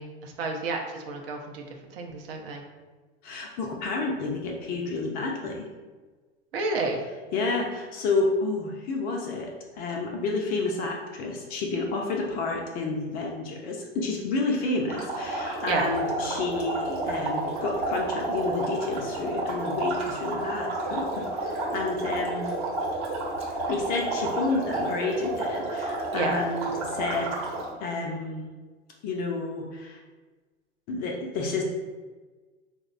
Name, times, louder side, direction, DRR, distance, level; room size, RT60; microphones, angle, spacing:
voice 1, 0.0-1.7 1.9-2.6 6.5-7.0 15.6-15.9 26.1-26.4, right 3 dB, 55° right, 2 dB, 0.6 m, -30 dB
voice 2, 3.2-5.7 7.3-22.5 23.7-27.4 27.8-28.5 29.0-30.0 30.9-31.6, left 3 dB, 30° left, 0 dB, 0.4 m, -30 dB
sound 1, 14.9-27.7, right 2 dB, 40° right, 0.9 m, -31 dB
4.1 x 2.0 x 2.4 m, 1.3 s
figure-of-eight pair, 90°, 33 cm